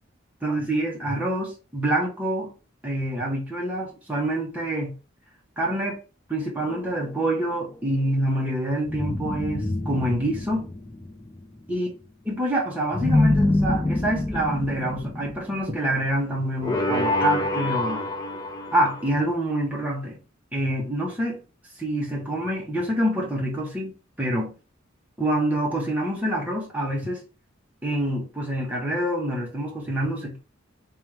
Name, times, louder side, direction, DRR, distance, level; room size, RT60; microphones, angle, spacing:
voice 1, 0.4-2.5 2.8-4.9 5.6-6.0 6.3-10.7 11.7-11.9 12.3-18.0 18.7-20.2 20.5-21.4 21.8-23.9 24.2-24.5 25.2-27.2 27.8-30.4, right 1 dB, 10° right, 1.3 m, -26 dB
sound 1, 6.6-7.5 8.8-11.5 12.9-16.0 16.6-19.1, left 1 dB, 20° left, 0.6 m, -26 dB
3.4 x 3.3 x 3.2 m
head